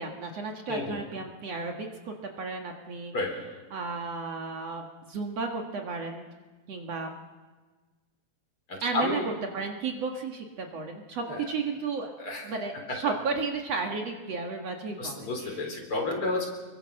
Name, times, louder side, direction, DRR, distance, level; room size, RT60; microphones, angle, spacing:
voice 1, 0.0-3.1 3.7-6.2 6.7-7.1 8.8-9.2 9.5-12.1 12.4-15.7, right 4 dB, 55° right, 2 dB, 2.6 m, -33 dB
voice 2, 0.7-1.0 3.1-3.3 8.7-9.3 11.3-11.4 12.2-12.5 12.9-13.0 15.0-16.5, left 2 dB, 40° left, 1 dB, 4.8 m, -31 dB
25.5 x 22.5 x 6.6 m, 1.3 s
omnidirectional pair, 3.6 m